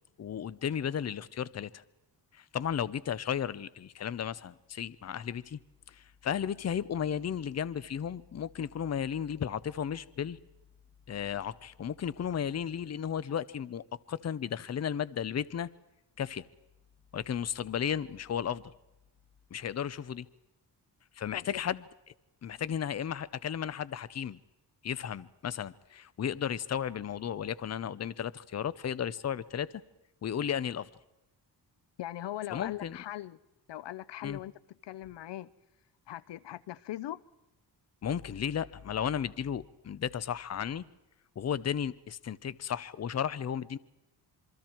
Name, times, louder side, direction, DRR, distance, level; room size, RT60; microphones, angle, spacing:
voice 1, 0.2-1.8 2.3-5.6 5.9-10.4 11.1-15.7 16.2-16.5 17.1-18.7 19.5-20.3 21.2-21.8 22.4-24.4 24.8-29.7 30.2-30.9 32.5-33.0 34.2-34.4 38.0-40.8 41.4-43.8, left 8 dB, 40° left, 19 dB, 0.7 m, -34 dB
voice 2, 32.0-33.4 33.7-34.5 34.8-35.5 36.1-37.2, left 13 dB, 75° left, 20 dB, 0.7 m, -40 dB
27.5 x 23.5 x 4.5 m, 0.93 s
cardioid pair, 110°, 42 cm